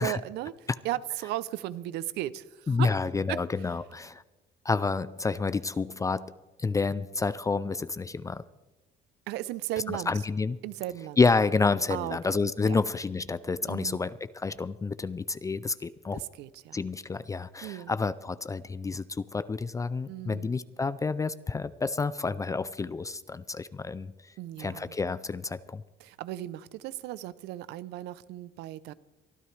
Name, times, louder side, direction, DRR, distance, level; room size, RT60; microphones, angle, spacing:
voice 1, 0.0-2.9 3.3-3.4 9.3-10.1 10.6-11.2 11.9-12.2 12.6-12.8 13.7-14.0 16.1-16.8 17.6-18.0 20.1-20.6 24.4-25.0 26.0-28.9, right 14 dB, 85° right, 18 dB, 0.6 m, -36 dB
voice 2, 2.7-4.2 4.6-6.3 6.6-8.4 9.9-10.6 11.2-16.2 16.7-24.1 24.6-25.8, left 4 dB, 20° left, 16 dB, 0.4 m, -29 dB
23.5 x 12.5 x 3.3 m, 1.1 s
cardioid pair, 110°, 17 cm